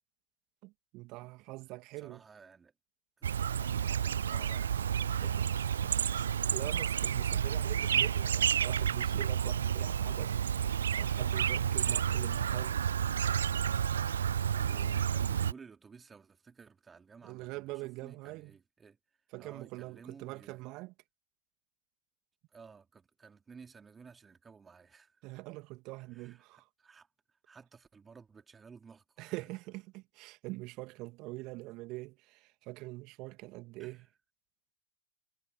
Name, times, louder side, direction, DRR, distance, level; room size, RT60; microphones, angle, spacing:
voice 1, 0.6-2.2 5.2-5.5 5.8-12.8 17.2-18.5 19.3-20.9 25.2-26.7 29.2-34.0, right 22 dB, 40° right, 2.5 m, -44 dB
voice 2, 2.0-2.7 3.2-4.8 13.9-20.7 22.5-25.4 26.1-29.5 33.8-34.1, right 5 dB, 15° right, 4.2 m, -56 dB
Chirp tweet, 3.2-15.5, right 8 dB, 65° right, 0.3 m, -30 dB
figure-of-eight pair, 90°, 0 cm